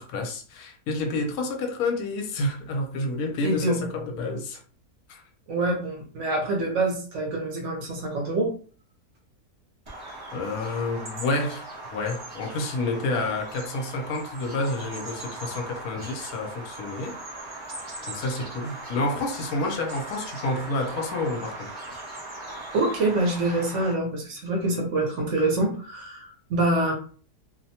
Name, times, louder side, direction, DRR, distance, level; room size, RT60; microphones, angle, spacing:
voice 1, 0.0-4.6 5.1-5.2 10.3-17.1 17.4-17.5 18.1-21.7, left 2 dB, 75° left, 1.1 m, -29 dB
voice 2, 3.4-3.8 5.5-8.5 22.7-26.9, right 2 dB, 60° right, 1.0 m, -25 dB
Bird vocalization bird call bird song, 9.8-23.9, right 2 dB, 40° right, 0.4 m, -39 dB
2.7 x 2.1 x 2.7 m
omnidirectional pair, 1.7 m